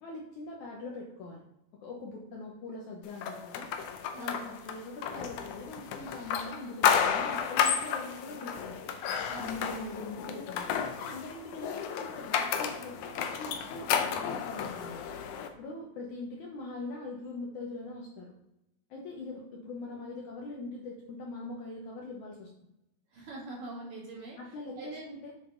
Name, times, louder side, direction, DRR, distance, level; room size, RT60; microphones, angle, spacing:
voice 1, 0.0-1.4 1.8-3.7 4.2-8.8 9.4-10.7 11.0-15.0 15.6-18.3 18.9-22.5 24.4-25.3, left 2 dB, 65° left, -2 dB, 2.0 m, -42 dB
sound 1, 3.2-15.5, left 7 dB, 85° left, 1.7 m, -32 dB
voice 2, 4.1-4.5 9.3-9.7 23.1-24.4 24.8-25.1, right 2 dB, 60° right, -5 dB, 4.1 m, -43 dB
8.4 x 5.8 x 3.9 m, 0.87 s
omnidirectional pair, 4.5 m